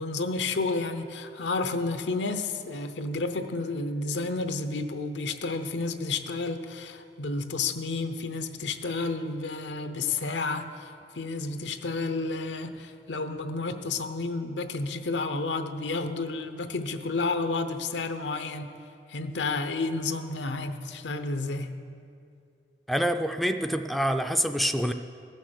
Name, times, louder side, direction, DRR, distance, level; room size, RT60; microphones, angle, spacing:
voice 1, 0.0-10.9 11.1-18.7 19.1-21.8, left 3 dB, 85° left, 9 dB, 0.7 m, -31 dB
voice 2, 22.9-24.9, equal, ahead, 7 dB, 0.3 m, -26 dB
15.0 x 6.4 x 6.4 m, 2.5 s
head